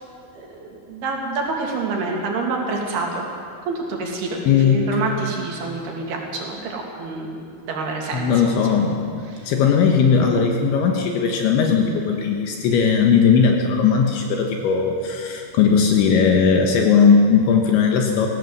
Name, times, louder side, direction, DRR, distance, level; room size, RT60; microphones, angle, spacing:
voice 1, 0.3-3.3 3.7-8.6 9.3-9.5, right 3 dB, 55° right, 0 dB, 4.6 m, -27 dB
voice 2, 4.5-4.9 8.1-9.1 9.5-18.3, left 6 dB, 75° left, 2 dB, 3.5 m, -18 dB
22.0 x 17.0 x 8.1 m, 2.5 s
omnidirectional pair, 5.7 m